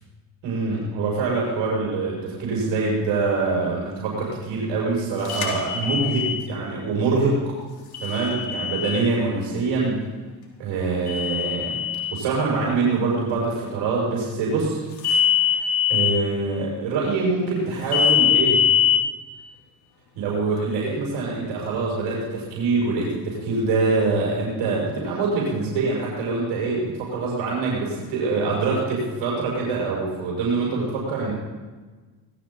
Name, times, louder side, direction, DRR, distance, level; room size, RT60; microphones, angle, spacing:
voice 1, 0.4-7.5 8.0-10.1 10.6-11.7 12.1-14.8 15.4-18.6 20.2-31.3, right 3 dB, 75° right, -4 dB, 6.4 m, -24 dB
sound 1, 5.3-6.4 7.9-9.0 11.1-12.1 15.0-16.1 17.9-19.0, left 8 dB, 50° left, 3.7 m, -22 dB
20.0 x 14.0 x 4.0 m, 1.3 s
supercardioid pair, 80°, 46 cm